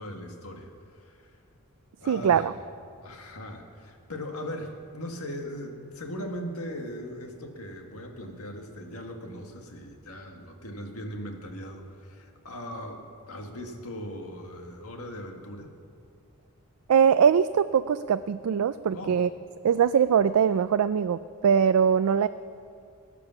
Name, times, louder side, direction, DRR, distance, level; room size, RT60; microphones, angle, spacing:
voice 1, 0.0-1.4 2.0-2.5 3.0-15.7 18.9-19.2, equal, 80° left, 3 dB, 1.8 m, -39 dB
voice 2, 2.1-2.5 16.9-19.3 19.6-22.3, right 7 dB, 80° right, 12 dB, 0.4 m, -22 dB
18.5 x 8.5 x 7.0 m, 2.4 s
head